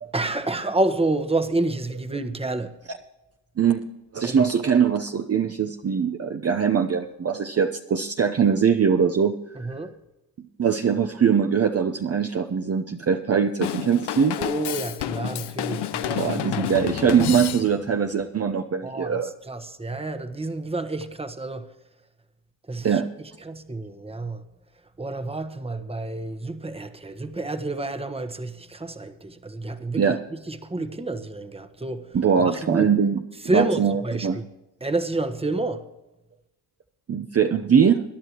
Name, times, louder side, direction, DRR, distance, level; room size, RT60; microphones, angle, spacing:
voice 1, 0.1-2.7 4.2-4.5 9.5-9.9 14.4-16.7 18.8-21.7 22.7-23.0 23.4-24.4 25.0-32.9 33.4-34.5 34.8-35.8, right 2 dB, 15° right, 1.2 m, -29 dB
voice 2, 4.1-9.4 10.6-14.4 16.1-19.3 22.8-23.1 30.0-30.2 32.1-33.2 33.5-34.4 37.1-38.0, right 7 dB, 35° right, 0.8 m, -22 dB
Drum kit / Drum, 13.6-18.0, left 11 dB, 65° left, 0.8 m, -30 dB
22.0 x 11.0 x 3.0 m
cardioid pair, 65°, 43 cm